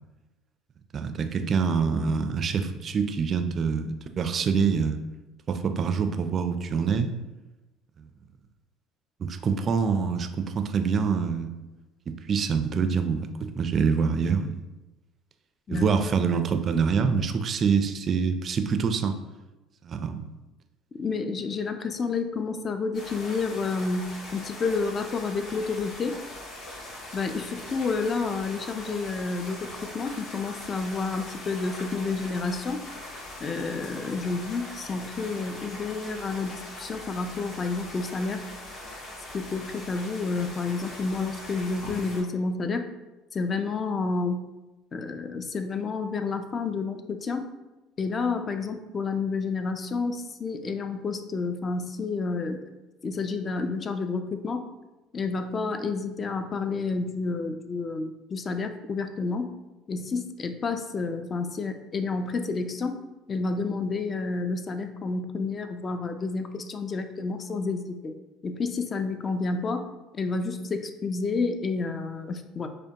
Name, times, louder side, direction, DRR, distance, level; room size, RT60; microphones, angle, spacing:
voice 1, 0.9-5.0 5.5-7.1 9.2-11.5 12.1-14.6 15.7-19.2 19.8-20.2, right 5 dB, 40° right, 8 dB, 0.3 m, -25 dB
voice 2, 21.0-26.2 27.1-32.8 33.4-38.4 39.3-42.9 43.3-44.5 44.9-47.4 48.0-52.7 53.0-54.7 55.1-59.5 59.9-63.0 63.3-68.1 68.4-69.9 70.1-72.7, left 4 dB, 35° left, 8 dB, 0.4 m, -30 dB
sound 1, 22.9-42.2, left 1 dB, 65° left, 1.4 m, -41 dB
5.1 x 2.1 x 2.8 m, 1.1 s
supercardioid pair, 85°, 0 cm